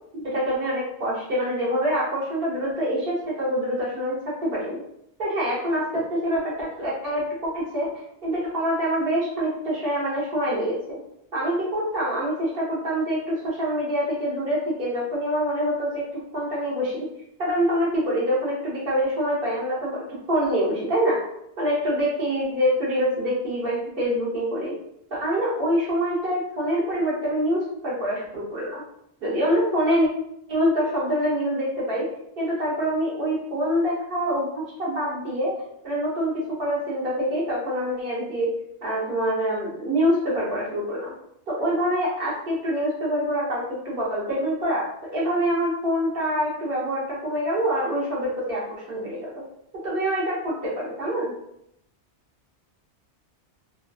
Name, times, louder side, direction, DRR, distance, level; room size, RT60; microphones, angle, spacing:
voice 1, 0.1-4.8 5.2-7.9 8.2-10.8 11.3-16.0 16.3-17.0 17.4-21.2 21.6-24.7 25.1-28.8 29.2-30.1 30.5-32.1 32.4-35.6 35.8-38.5 38.8-41.1 41.5-49.4 49.8-51.3, equal, 60° right, -6 dB, 1.2 m, -25 dB
2.9 x 2.4 x 2.3 m, 0.76 s
omnidirectional pair, 1.1 m